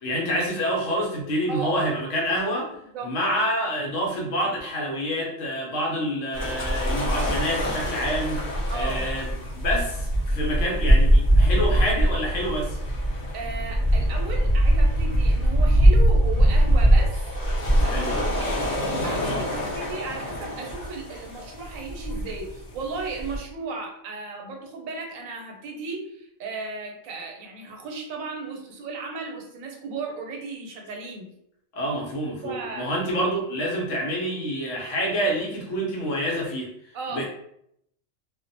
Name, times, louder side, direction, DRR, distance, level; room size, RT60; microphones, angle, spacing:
voice 1, 0.0-2.7 3.0-12.8 17.8-18.3 19.3-19.4 31.7-37.3, equal, 70° left, -1 dB, 1.0 m, -27 dB
voice 2, 1.5-1.8 2.9-3.1 8.7-9.1 13.3-17.2 17.8-18.6 18.8-19.5 19.7-31.3 32.4-32.9 36.9-37.3, right 4 dB, 85° right, 2 dB, 1.0 m, -35 dB
sound 1, 6.3-23.4, equal, 45° left, 0.6 m, -22 dB
Boat Water vehicle, 6.4-14.4, equal, 50° right, 0.4 m, -37 dB
2.5 x 2.0 x 2.6 m, 0.75 s
omnidirectional pair, 1.4 m